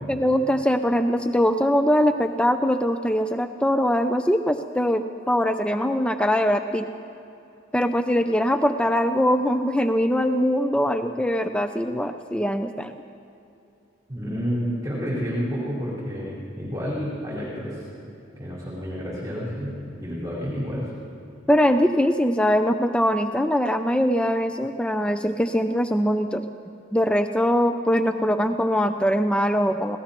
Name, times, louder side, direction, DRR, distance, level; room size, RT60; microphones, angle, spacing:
voice 1, 0.1-6.9 7.7-13.0 21.5-26.5 26.9-30.0, equal, 5° left, 8 dB, 0.4 m, -22 dB
voice 2, 14.1-17.8 18.4-20.9, equal, 20° right, -8 dB, 4.5 m, -30 dB
26.5 x 18.0 x 3.0 m, 2.8 s
head